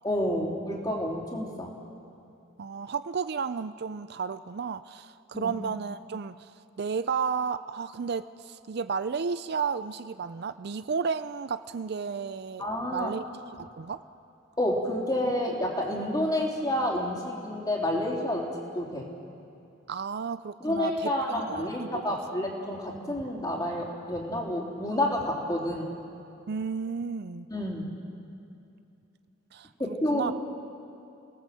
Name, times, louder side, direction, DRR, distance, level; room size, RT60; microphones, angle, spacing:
voice 1, 0.0-1.7 5.3-5.5 12.6-13.1 14.6-19.1 20.6-26.0 27.5-27.9 29.8-30.3, left 1 dB, 20° left, -1 dB, 3.4 m, -29 dB
voice 2, 2.6-6.5 6.8-12.6 12.9-13.2 13.6-14.0 19.9-21.1 21.5-22.2 23.1-23.2 26.5-27.5 29.5-30.3, right 5 dB, 55° right, 13 dB, 0.4 m, -33 dB
29.5 x 18.0 x 7.7 m, 2.7 s
head